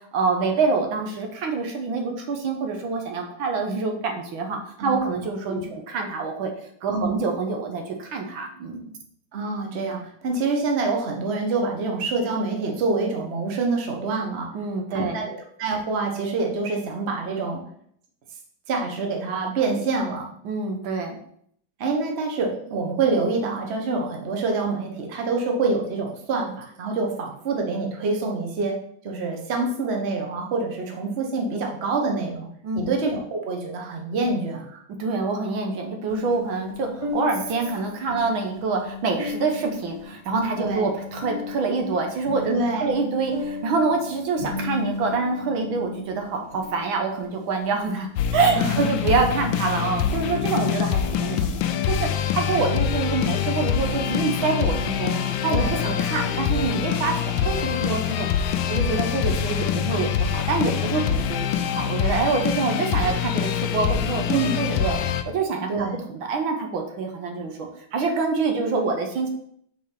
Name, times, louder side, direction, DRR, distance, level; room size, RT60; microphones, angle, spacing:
voice 1, 0.1-6.5 6.8-8.9 14.5-15.3 20.5-21.2 32.6-33.0 35.0-42.5 42.8-51.6 51.9-58.3 58.7-65.0 65.3-69.3, right 4 dB, 75° right, 3 dB, 1.8 m, -26 dB
voice 2, 6.9-7.2 9.3-14.5 14.9-17.6 18.7-20.3 21.8-28.7 29.0-32.5 32.7-34.8 40.6-40.9 42.5-43.0 48.5-48.9 55.5-56.0 64.3-64.6 65.7-66.0, right 3 dB, 40° right, 1 dB, 1.2 m, -26 dB
sound 1, 36.1-49.8, left 4 dB, 15° right, 1.6 m, -35 dB
sound 2, 48.2-65.2, left 9 dB, 80° left, 1.4 m, -25 dB
5.9 x 4.0 x 5.7 m, 0.67 s
omnidirectional pair, 2.2 m